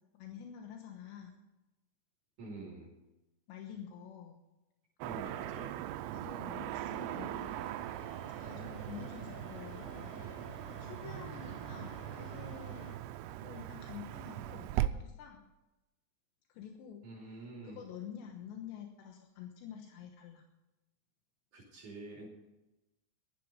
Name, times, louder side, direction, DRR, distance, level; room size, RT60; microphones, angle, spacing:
voice 1, 0.1-1.4 3.5-4.4 5.5-5.6 6.1-7.6 8.4-10.3 10.7-12.9 13.4-15.4 16.5-20.4, left 8 dB, 85° left, 3 dB, 3.4 m, -48 dB
voice 2, 2.4-2.9 5.0-5.8 17.0-17.8 21.5-22.3, right 2 dB, 50° right, -2 dB, 3.9 m, -47 dB
Car passing by / Traffic noise roadway noise, 5.0-14.9, right 14 dB, 80° right, 2.6 m, -40 dB
sound 1, 6.7-13.0, left 4 dB, 60° left, 3.2 m, -52 dB
14.5 x 12.5 x 5.1 m, 1.0 s
omnidirectional pair, 5.0 m